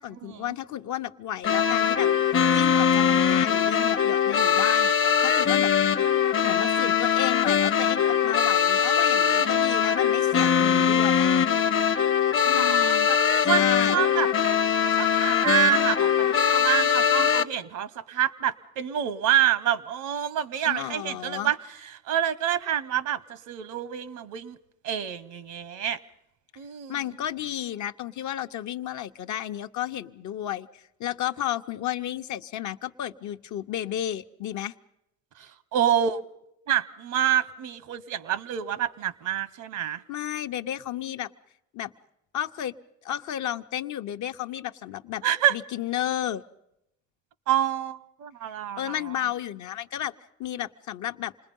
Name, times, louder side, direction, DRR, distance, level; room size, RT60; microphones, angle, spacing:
voice 1, 0.0-2.1 2.5-5.9 6.4-11.3 12.4-13.1 13.4-14.0 20.6-21.5 26.9-34.7 40.1-41.3 41.7-41.9 42.3-42.7 43.0-45.2 45.5-46.4 48.8-50.1 50.4-51.3, left 11 dB, 70° left, 0.8 m, -32 dB
sound 1, 1.4-17.4, left 8 dB, 45° left, 0.8 m, -22 dB
voice 2, 9.1-9.7 12.5-13.2 13.4-14.3 14.8-21.6 22.1-24.6 24.8-26.0 26.6-27.0 35.4-36.2 36.7-40.0 45.2-45.6 47.5-49.0, right 10 dB, 85° right, 1.0 m, -27 dB
27.5 x 20.5 x 5.4 m
cardioid pair, 90°, 30 cm